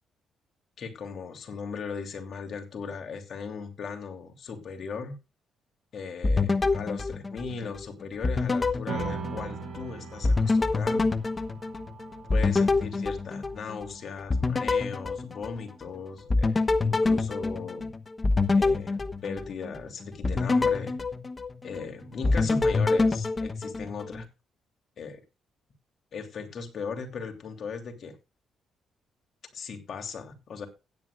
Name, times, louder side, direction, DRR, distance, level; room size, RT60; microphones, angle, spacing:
voice 1, 0.8-5.2 5.9-11.1 12.3-17.9 18.5-21.0 21.6-24.3 25.0-25.2 26.1-28.2 29.5-30.7, left 5 dB, 55° left, 3.1 m, -38 dB
sound 1, 6.2-7.8 8.2-9.9 10.2-13.9 14.3-15.9 16.3-19.8 20.2-21.9 22.2-24.2, left 3 dB, 25° left, 1.0 m, -26 dB
sound 2, 8.9-15.6, right 6 dB, 65° right, 7.4 m, -41 dB
16.0 x 10.5 x 2.4 m
cardioid pair, 90°, 0 cm